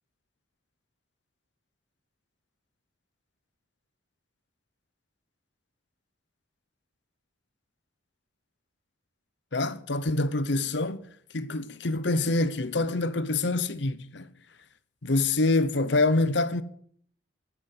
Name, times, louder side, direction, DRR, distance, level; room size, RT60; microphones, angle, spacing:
voice 1, 9.5-11.0 11.3-14.3 15.0-16.6, left 2 dB, 65° left, 0.9 m, -26 dB
12.5 x 7.2 x 9.8 m
head